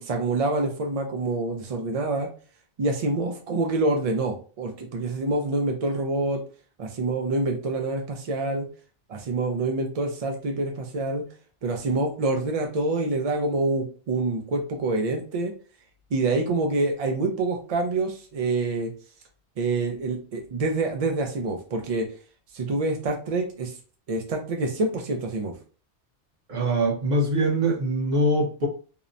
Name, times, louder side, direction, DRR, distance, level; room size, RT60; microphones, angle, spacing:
voice 1, 0.0-2.3 2.8-6.4 6.8-8.7 9.1-11.2 11.6-15.5 16.1-18.9 19.6-22.1 22.5-23.7 24.1-25.5, right 2 dB, 65° right, 0.3 m, -26 dB
voice 2, 26.5-28.7, right 1 dB, 45° right, 0.8 m, -23 dB
2.8 x 2.1 x 2.5 m
omnidirectional pair, 1.2 m